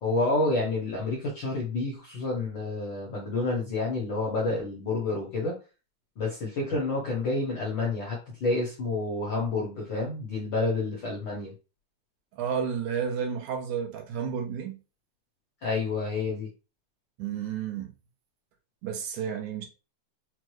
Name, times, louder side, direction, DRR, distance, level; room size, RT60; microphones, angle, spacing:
voice 1, 0.0-5.6 6.2-11.5 15.6-16.5, left 3 dB, 70° left, 1.1 m, -29 dB
voice 2, 12.3-14.8 17.2-17.9 18.8-19.7, right 7 dB, 75° right, 2.1 m, -31 dB
5.8 x 2.1 x 3.1 m
omnidirectional pair, 3.5 m